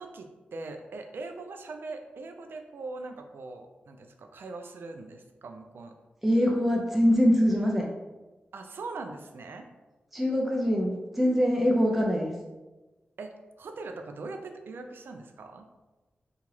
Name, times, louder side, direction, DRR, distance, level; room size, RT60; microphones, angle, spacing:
voice 1, 0.0-5.9 8.5-9.7 13.2-15.7, right 3 dB, 75° right, 5 dB, 0.3 m, -41 dB
voice 2, 6.2-7.9 10.1-12.3, equal, 5° right, -1 dB, 0.4 m, -23 dB
2.8 x 2.3 x 3.0 m, 1.1 s
wide cardioid pair, 80°, 4 cm